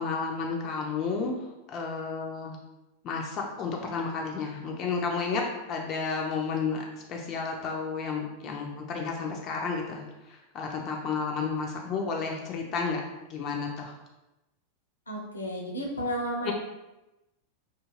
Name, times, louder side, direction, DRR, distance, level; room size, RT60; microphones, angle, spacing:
voice 1, 0.0-1.4 1.7-2.6 3.0-13.0 13.3-14.0 16.5-16.6, left 4 dB, 35° left, 1 dB, 0.4 m, -32 dB
voice 2, 15.1-16.5, equal, 75° left, -1 dB, 0.6 m, -32 dB
2.4 x 2.4 x 3.0 m, 0.97 s
figure-of-eight pair, 90°, 0 cm